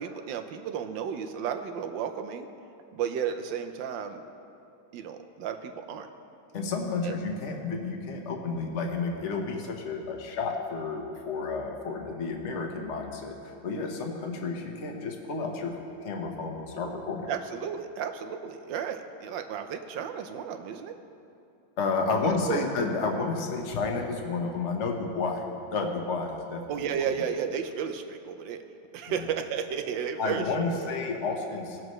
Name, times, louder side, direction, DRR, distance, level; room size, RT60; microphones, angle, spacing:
voice 1, 0.0-2.5 2.9-4.2 4.9-6.1 7.0-7.1 17.3-20.9 22.2-22.6 26.7-28.6 28.9-30.9, right 7 dB, 75° right, 7 dB, 1.3 m, -33 dB
voice 2, 6.5-15.7 16.0-17.3 21.8-25.5 25.7-26.6 30.2-31.8, left 4 dB, 45° left, 1 dB, 1.2 m, -31 dB
19.0 x 7.5 x 3.1 m, 2.6 s
omnidirectional pair, 2.1 m